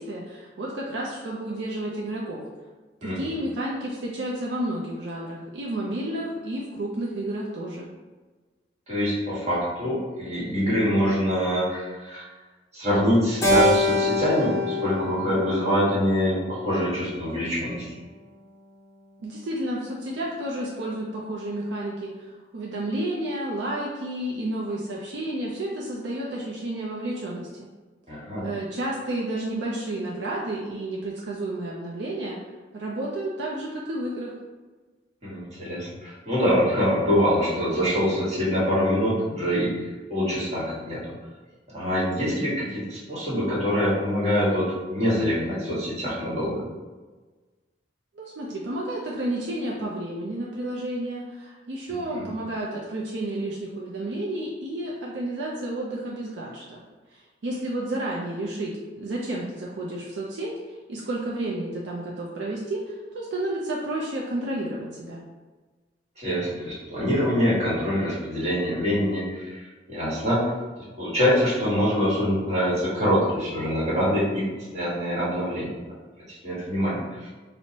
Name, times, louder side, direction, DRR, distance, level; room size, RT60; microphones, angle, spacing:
voice 1, 0.0-2.4 3.0-7.9 19.2-27.5 28.4-32.4 32.7-34.4 48.2-56.8 57.1-65.2, right 1 dB, 70° right, -4 dB, 0.4 m, -31 dB
voice 2, 8.9-12.2 12.7-17.9 28.1-28.5 35.2-39.7 40.1-41.1 41.7-46.6 51.9-52.3 66.2-70.5 71.0-74.5 74.7-75.8 76.3-77.3, equal, 35° right, -7 dB, 1.2 m, -25 dB
Keyboard (musical), 13.4-17.8, left 1 dB, 15° left, 0.5 m, -26 dB
4.4 x 2.0 x 2.7 m, 1.3 s
head